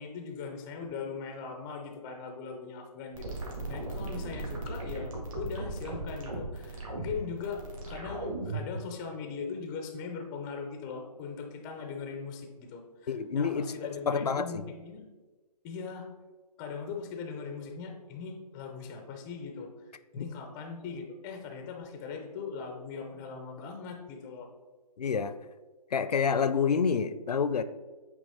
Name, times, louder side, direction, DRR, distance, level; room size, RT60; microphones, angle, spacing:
voice 1, 0.0-3.4 3.7-15.1 15.6-16.1 16.6-19.7 20.1-24.5, left 5 dB, 10° left, 4 dB, 0.3 m, -40 dB
sound 1, 3.1-8.7, right 2 dB, 55° right, 1.9 m, -37 dB
voice 2, 13.1-14.6 20.2-20.3 25.0-25.3 25.9-27.6, left 6 dB, 75° left, 13 dB, 0.5 m, -28 dB
8.3 x 2.9 x 4.1 m, 1.3 s
figure-of-eight pair, 140°, 20 cm